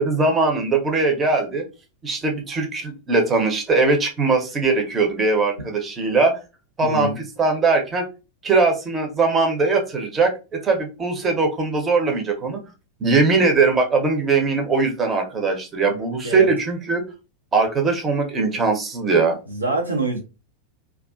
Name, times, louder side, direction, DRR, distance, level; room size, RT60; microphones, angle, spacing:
voice 1, 0.0-1.6 2.0-6.4 6.8-7.1 7.4-8.1 8.4-12.6 13.0-17.0 17.5-19.4, right 3 dB, 20° right, 0.7 m, -20 dB
voice 2, 6.8-7.2 16.2-16.5 19.5-20.2, right 2 dB, 85° right, 0.6 m, -24 dB
2.4 x 2.3 x 2.3 m
figure-of-eight pair, 90°, 0 cm